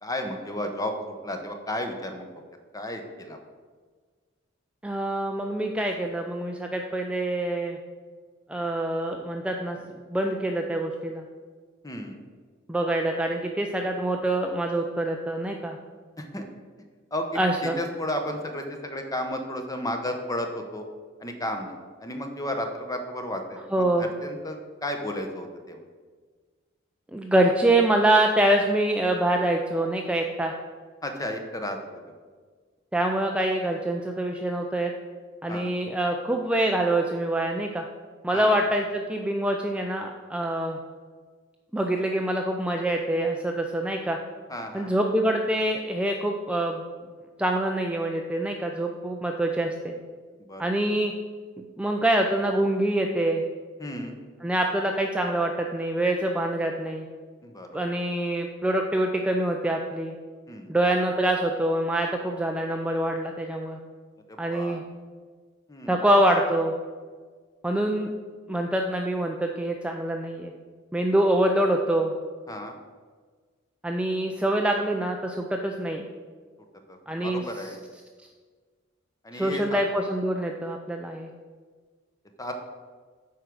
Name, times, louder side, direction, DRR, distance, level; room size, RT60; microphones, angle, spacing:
voice 1, 0.0-0.9 1.2-2.3 2.7-3.4 11.8-12.2 16.2-16.4 17.1-17.3 17.6-20.8 21.2-23.6 24.0-25.8 31.0-31.8 32.1-32.2 35.5-35.7 38.3-38.6 44.5-44.9 50.5-50.6 53.8-54.2 57.4-57.7 60.5-60.8 64.3-64.8 65.7-66.0 72.5-72.8 76.9-77.8 79.2-79.8 82.4-82.5, left 1 dB, 20° left, 5 dB, 0.9 m, -33 dB
voice 2, 4.8-7.8 8.5-9.8 10.1-11.2 12.7-15.8 17.4-17.8 23.7-24.1 27.1-30.5 32.9-34.9 35.4-37.8 38.2-40.8 41.7-44.2 44.7-46.8 47.4-49.9 50.6-51.1 51.6-53.4 54.4-57.1 57.7-60.2 60.7-63.8 64.4-64.8 65.9-66.8 67.6-68.1 68.5-70.5 70.9-72.1 73.8-76.0 77.1-77.7 79.3-81.3, right 1 dB, 5° right, 2 dB, 0.4 m, -25 dB
8.8 x 4.7 x 6.3 m, 1.5 s
head